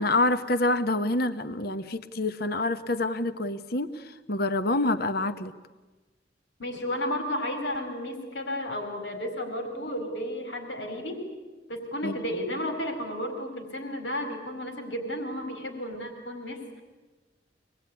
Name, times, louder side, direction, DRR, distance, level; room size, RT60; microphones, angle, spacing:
voice 1, 0.0-5.5 12.0-12.2, left 2 dB, 55° left, 10 dB, 1.1 m, -27 dB
voice 2, 6.6-11.3 11.7-16.8, left 1 dB, 90° left, 5 dB, 4.4 m, -33 dB
25.0 x 20.5 x 9.8 m, 1.2 s
head